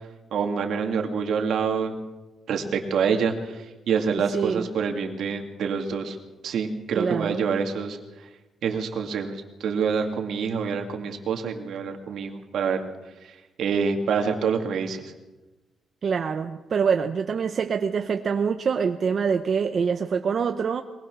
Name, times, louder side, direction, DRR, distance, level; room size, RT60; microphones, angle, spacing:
voice 1, 0.3-2.0 2.5-6.2 6.4-8.0 8.6-12.9 13.2-15.1, right 6 dB, 65° right, 4 dB, 2.2 m, -26 dB
voice 2, 4.1-4.7 6.9-7.5 16.0-20.8, right 6 dB, 40° right, 6 dB, 0.8 m, -25 dB
22.0 x 20.0 x 6.2 m, 1.1 s
cardioid pair, 155°, 0 cm